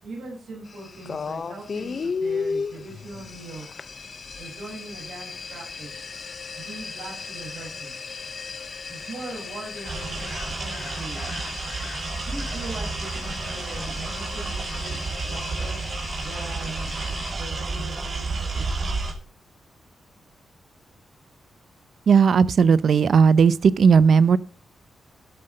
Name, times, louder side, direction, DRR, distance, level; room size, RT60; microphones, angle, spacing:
voice 1, 0.0-3.7 4.4-6.0 6.6-8.1 8.9-11.3 12.2-15.8 16.2-19.2, right 2 dB, 80° right, 6.1 m, -41 dB
sound 1, 0.7-17.3, left 5 dB, 40° left, 0.7 m, -36 dB
sound 2, 9.7-12.7, left 7 dB, 70° left, 2.3 m, -45 dB
sound 3, 9.8-19.1, right 3 dB, 40° right, 2.2 m, -31 dB
voice 2, 22.1-24.4, right 6 dB, 55° right, 0.6 m, -16 dB
12.0 x 7.6 x 5.4 m
wide cardioid pair, 155°, 0 cm